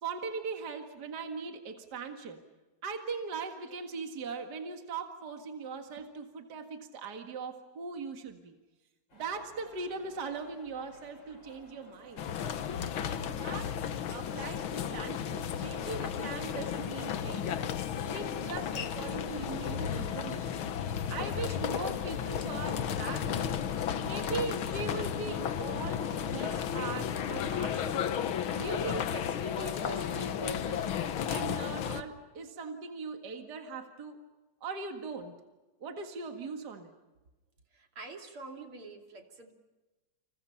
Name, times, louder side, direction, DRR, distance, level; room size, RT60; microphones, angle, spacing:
voice 1, 0.0-2.4 2.8-8.6 9.1-12.2 13.0-13.8 14.1-17.6 18.0-20.6 21.1-23.6 24.0-28.0 28.5-30.9 31.3-34.2 34.6-35.3 35.8-36.9, right 4 dB, 50° right, 4 dB, 2.4 m, -40 dB
sound 1, 9.1-28.0, left 1 dB, 55° left, 5.1 m, -57 dB
sound 2, 12.2-32.0, left 8 dB, 70° left, 1.9 m, -33 dB
voice 2, 37.7-39.5, right 3 dB, 80° right, 3 dB, 3.7 m, -46 dB
30.0 x 28.0 x 5.7 m, 1.1 s
omnidirectional pair, 2.4 m